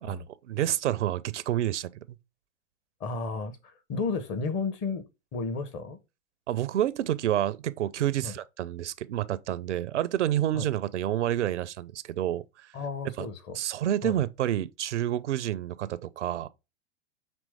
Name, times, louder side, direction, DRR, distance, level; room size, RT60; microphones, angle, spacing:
voice 1, 0.0-2.2 6.5-12.7 13.2-13.3 13.5-16.5, right 12 dB, 70° right, 0.5 m, -29 dB
voice 2, 3.0-5.0 5.3-6.0 8.2-8.4 10.5-10.7 12.7-13.6 14.0-14.2, left 4 dB, 30° left, 0.8 m, -33 dB
5.2 x 3.0 x 3.3 m
figure-of-eight pair, 100°, 37 cm